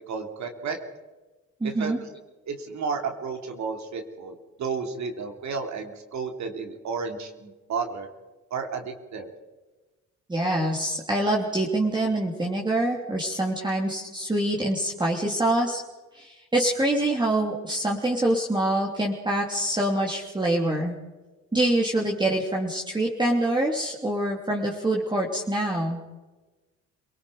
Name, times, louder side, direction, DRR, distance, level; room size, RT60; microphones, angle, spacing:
voice 1, 0.1-0.8 1.6-1.9 2.5-8.1 8.5-9.3, right 5 dB, 70° right, 4 dB, 3.2 m, -32 dB
voice 2, 1.6-2.0 10.3-15.8 16.1-20.9 21.5-26.0, right 1 dB, 15° right, -2 dB, 3.3 m, -25 dB
27.5 x 19.0 x 5.1 m, 1.2 s
cardioid pair, 90°, 30 cm